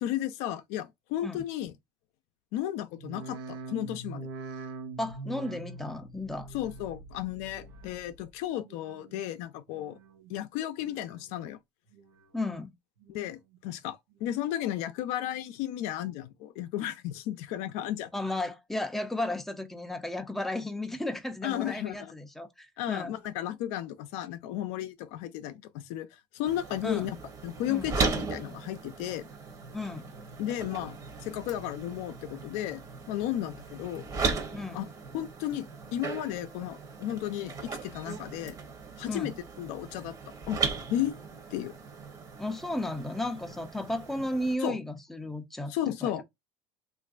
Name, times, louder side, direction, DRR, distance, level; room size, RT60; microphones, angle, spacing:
voice 1, 0.0-1.7 2.5-4.3 6.5-10.0 10.3-11.6 13.1-18.1 21.4-22.1 22.8-27.2 27.4-29.3 30.4-32.8 33.1-34.1 34.7-34.8 35.1-38.6 39.0-40.1 40.5-40.6 40.9-41.2 41.5-41.7 44.6-44.8 45.7-46.2, left 12 dB, 70° left, 0.5 m, -34 dB
sound 1, 2.9-8.3 8.6-9.2 9.7-10.4 10.8-11.4 11.9-12.5 13.0-13.6 14.1-14.2, right 3 dB, 90° right, 0.9 m, -44 dB
voice 2, 5.0-6.5 12.3-12.7 18.1-23.2 26.8-27.1 27.7-27.9 29.7-30.1 34.5-34.9 39.0-39.4 42.4-45.7 46.0-46.1, left 1 dB, ahead, 0.5 m, -34 dB
sound 2, 26.5-44.5, right 4 dB, 30° right, 1.0 m, -37 dB
3.1 x 2.5 x 2.4 m
cardioid pair, 130°, 12 cm